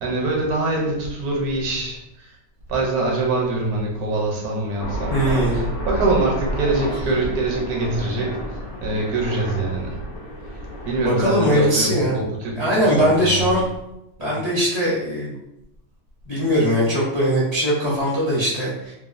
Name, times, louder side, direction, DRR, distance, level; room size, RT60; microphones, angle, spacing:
voice 1, 0.0-2.3 2.7-9.9 10.9-13.5 14.2-14.4, right 2 dB, 75° right, -1 dB, 1.2 m, -24 dB
Aircraft, 4.8-11.1, equal, 65° left, 0.8 m, -30 dB
voice 2, 5.1-5.6 11.0-12.2 12.5-13.7 14.2-15.3 16.3-18.9, equal, 35° left, -8 dB, 0.4 m, -20 dB
2.8 x 2.3 x 2.5 m, 0.86 s
omnidirectional pair, 1.6 m